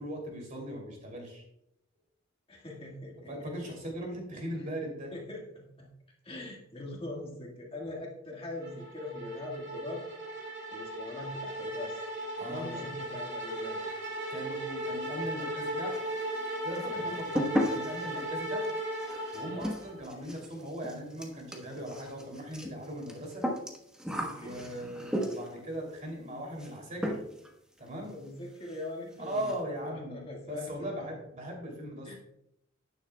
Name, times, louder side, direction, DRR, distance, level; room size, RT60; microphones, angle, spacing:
voice 1, 0.0-1.4 3.3-5.1 12.4-12.9 14.3-16.0 16.6-18.7 19.3-23.4 24.3-27.2 27.8-28.1 29.2-32.2, equal, 40° right, 0 dB, 2.8 m, -39 dB
voice 2, 2.5-3.5 4.6-4.7 5.1-5.9 6.2-10.0 10.7-12.0 12.4-13.8 16.9-17.2 19.4-19.7 24.2-24.6 28.1-29.6 29.8-30.9 32.0-32.2, left 2 dB, 25° left, -1 dB, 1.6 m, -42 dB
sound 1, 8.6-20.0, right 1 dB, 55° right, 2.6 m, -37 dB
sound 2, 15.9-16.5 16.7-25.6 26.6-26.8 27.0-27.5 27.8-27.9 28.3-28.4 28.6-28.8 29.1-29.6, equal, 5° right, 1.1 m, -35 dB
11.0 x 9.4 x 2.3 m, 0.78 s
head